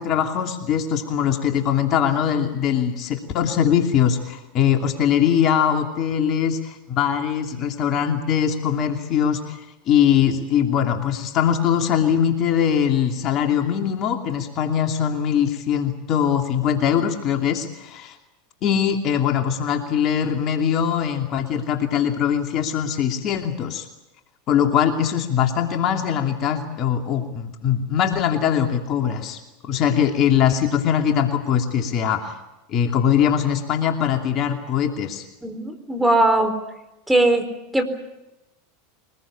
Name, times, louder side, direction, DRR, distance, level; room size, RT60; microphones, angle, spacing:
voice 1, 0.0-18.2 18.6-23.9 24.5-29.4 29.6-32.3 32.7-35.2, left 8 dB, 45° left, 4 dB, 2.7 m, -21 dB
voice 2, 35.4-36.5 37.1-37.5 37.7-37.8, right 2 dB, 5° right, 7 dB, 4.2 m, -19 dB
23.5 x 21.0 x 8.7 m, 0.94 s
hypercardioid pair, 95°, 0 cm